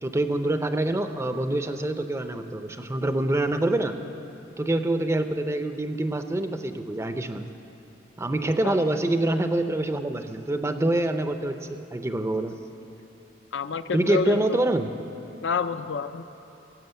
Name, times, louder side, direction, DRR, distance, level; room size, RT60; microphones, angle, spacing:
voice 1, 0.0-4.0 4.6-7.5 8.2-12.5 13.9-14.9, right 1 dB, 15° right, 8 dB, 0.5 m, -26 dB
voice 2, 13.5-14.6 15.4-16.2, left 5 dB, 70° left, 10 dB, 0.5 m, -28 dB
17.0 x 7.5 x 7.9 m, 2.9 s
head